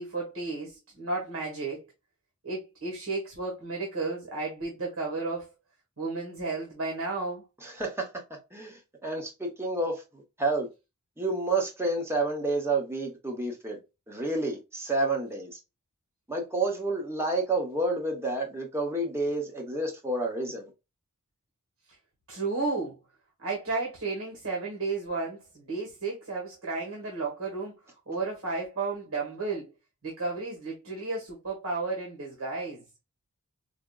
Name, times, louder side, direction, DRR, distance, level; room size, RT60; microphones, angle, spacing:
voice 1, 0.0-1.9 2.4-5.5 6.0-7.4 22.3-23.0 23.4-29.7 30.0-32.8, right 3 dB, 70° right, 1.3 m, -33 dB
voice 2, 7.6-10.7 11.2-13.8 14.1-15.6 16.3-20.7, right 2 dB, 10° right, 0.8 m, -30 dB
4.9 x 2.1 x 2.2 m
head